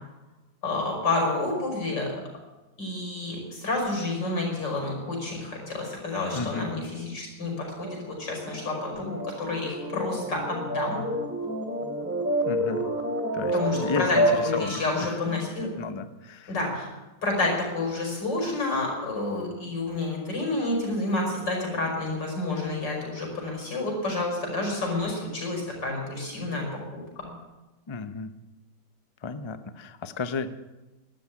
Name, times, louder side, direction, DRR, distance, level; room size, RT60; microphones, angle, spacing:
voice 1, 0.6-2.1 2.8-11.0 13.5-15.7 16.5-16.9 17.2-27.0, left 2 dB, 90° left, 0 dB, 6.2 m, -29 dB
voice 2, 6.3-6.7 12.5-12.9 13.3-15.2 15.8-16.5 27.9-28.3 29.2-30.5, left 4 dB, 35° left, 10 dB, 0.4 m, -33 dB
sound 1, 7.6-15.0, equal, 5° right, 2.8 m, -29 dB
13.5 x 12.5 x 8.6 m, 1.1 s
omnidirectional pair, 1.8 m